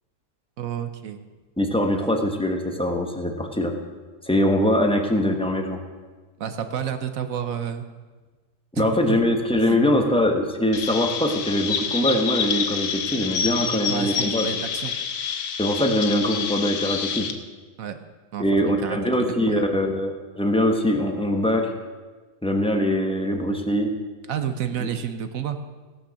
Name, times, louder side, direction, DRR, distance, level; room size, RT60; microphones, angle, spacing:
voice 1, 0.6-1.2 1.9-2.0 6.4-7.9 8.7-9.2 9.6-9.8 13.9-15.0 17.8-18.0 18.3-19.0 19.5-19.7 24.3-25.6, right 8 dB, 60° right, 9 dB, 1.1 m, -30 dB
voice 2, 1.6-3.7 4.3-5.8 8.7-14.5 15.6-17.3 18.4-21.7 22.4-23.9 24.8-24.9, left 1 dB, 5° left, 3 dB, 1.0 m, -22 dB
Chirp tweet, 10.7-17.3, left 7 dB, 85° left, 1.5 m, -28 dB
17.5 x 6.2 x 6.4 m, 1.3 s
omnidirectional pair, 1.8 m